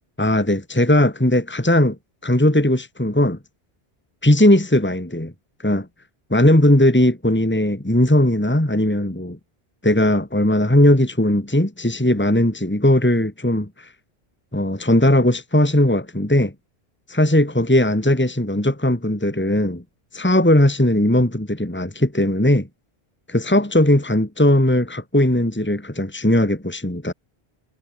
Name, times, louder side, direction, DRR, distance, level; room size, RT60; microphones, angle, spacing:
voice 1, 0.2-2.0 2.2-3.4 4.2-5.3 5.6-5.9 6.3-9.4 9.8-13.9 14.5-16.5 17.1-19.8 20.1-22.7 23.3-27.1, left 1 dB, 10° left, 2.2 m, -18 dB
omnidirectional pair, 1.1 m